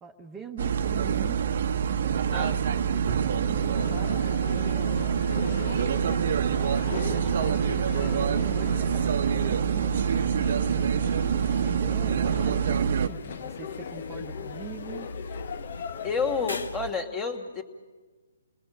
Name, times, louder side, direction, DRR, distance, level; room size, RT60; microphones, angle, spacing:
voice 1, 0.0-1.4 2.0-5.0 5.6-10.1 10.5-15.1, right 5 dB, 15° right, 2 dB, 1.2 m, -43 dB
sound 1, 0.6-16.9, left 3 dB, 90° left, 1.2 m, -43 dB
sound 2, 0.6-13.1, right 8 dB, 60° right, 0.9 m, -26 dB
sound 3, 3.5-16.7, left 7 dB, 50° left, 0.9 m, -40 dB
voice 2, 16.0-17.6, left 4 dB, 20° left, 5 dB, 2.6 m, -29 dB
29.5 x 20.0 x 6.7 m, 1.3 s
hypercardioid pair, 150°, 0 cm